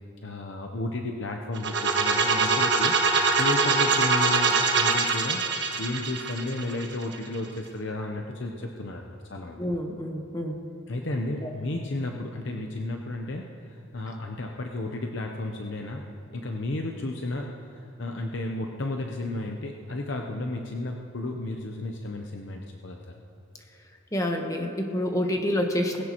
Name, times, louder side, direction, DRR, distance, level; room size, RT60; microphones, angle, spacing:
voice 1, 0.2-5.4 5.8-9.6 10.9-16.0 16.3-23.0, left 2 dB, 60° left, 2 dB, 0.8 m, -33 dB
sound 1, 1.5-7.4, right 4 dB, 60° right, 1.5 m, -23 dB
voice 2, 9.6-10.6 11.4-11.5 24.1-26.0, left 1 dB, 15° left, 3 dB, 1.1 m, -28 dB
20.0 x 16.5 x 3.0 m, 2.7 s
head